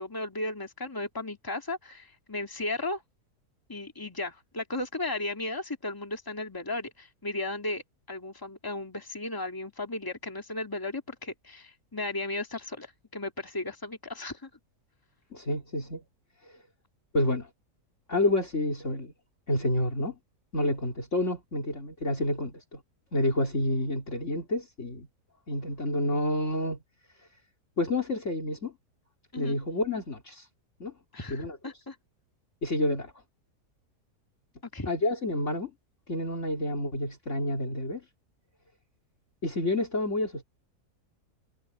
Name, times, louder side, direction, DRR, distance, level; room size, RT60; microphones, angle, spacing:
voice 1, 0.0-3.0 3.7-14.5 29.3-29.6 31.1-32.0 34.6-34.9, left 2 dB, 15° left, 2.3 m, -35 dB
voice 2, 15.3-16.0 17.1-17.5 18.1-19.1 19.5-20.1 20.5-22.8 23.1-25.1 25.5-26.8 27.8-28.7 29.3-30.4 30.8-30.9 31.3-31.6 32.6-33.1 34.9-35.7 36.1-38.0 39.4-40.4, left 1 dB, 50° left, 3.3 m, -29 dB
omnidirectional pair, 1.7 m